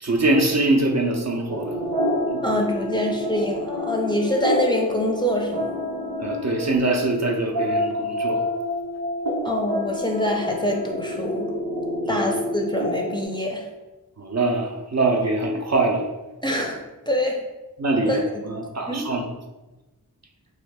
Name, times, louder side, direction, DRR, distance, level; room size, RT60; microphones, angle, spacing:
voice 1, 0.0-1.8 2.3-2.4 6.2-8.4 12.1-12.2 14.2-16.1 17.8-19.3, right 2 dB, 45° right, 2 dB, 0.5 m, -23 dB
sound 1, 1.5-13.2, left 1 dB, 85° right, 0.7 m, -28 dB
voice 2, 2.4-5.7 9.4-11.5 12.1-13.7 16.4-16.8 17.1-17.4 18.1-18.4 18.9-19.1, left 1 dB, 10° left, 0 dB, 0.5 m, -25 dB
3.0 x 2.4 x 3.3 m, 1.1 s
wide cardioid pair, 40°, 38 cm